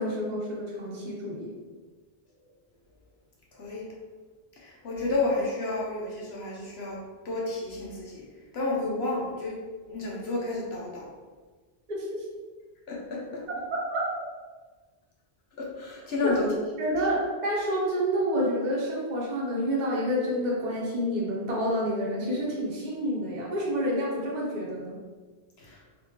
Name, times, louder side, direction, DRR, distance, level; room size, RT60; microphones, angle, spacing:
voice 1, 0.0-1.5 11.9-12.2 13.9-14.0 16.2-16.3 16.8-25.0, equal, 45° right, -4 dB, 0.9 m, -28 dB
voice 2, 3.5-3.9 4.6-7.0 7.2-8.2 8.5-9.6 9.9-11.1 12.9-13.4 15.6-16.5 25.6-25.8, left 2 dB, 80° left, -4 dB, 1.1 m, -31 dB
3.7 x 2.6 x 3.0 m, 1.4 s
omnidirectional pair, 1.1 m